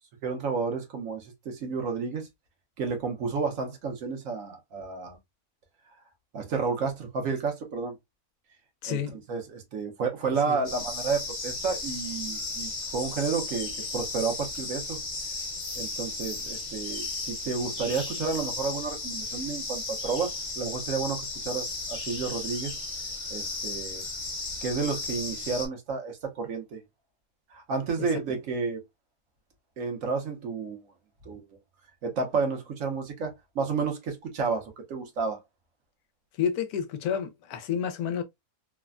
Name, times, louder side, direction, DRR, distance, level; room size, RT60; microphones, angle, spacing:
voice 1, 0.2-2.3 2.8-5.2 6.3-8.0 8.9-9.0 9.3-15.0 15.7-22.8 23.3-24.0 24.6-26.8 27.5-28.8 29.8-30.9 31.2-31.4 32.0-35.4, right 5 dB, 65° right, 1.1 m, -31 dB
voice 2, 8.8-9.2 10.3-10.6 28.0-28.1 36.4-38.2, left 8 dB, 80° left, 1.1 m, -30 dB
sound 1, 10.6-25.7, left 3 dB, 45° left, 1.1 m, -35 dB
3.2 x 2.1 x 2.3 m
omnidirectional pair, 1.6 m